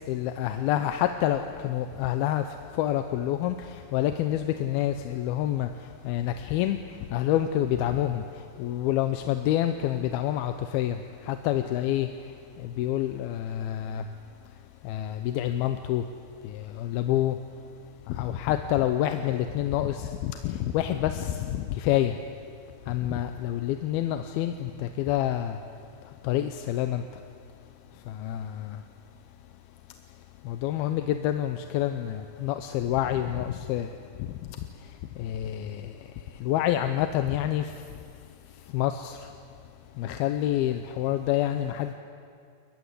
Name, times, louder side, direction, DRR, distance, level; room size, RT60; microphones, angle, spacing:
voice 1, 0.1-2.4 2.8-5.7 6.1-6.8 7.1-8.2 8.6-11.0 11.2-12.1 12.6-14.0 14.8-16.0 16.4-17.4 18.1-22.2 22.9-25.6 26.2-27.0 28.1-28.8 30.5-33.9 35.2-35.9 36.4-37.7 38.7-39.2 40.0-41.9, left 12 dB, 80° left, 8 dB, 2.6 m, -27 dB
28.5 x 15.5 x 9.9 m, 2.3 s
omnidirectional pair, 4.5 m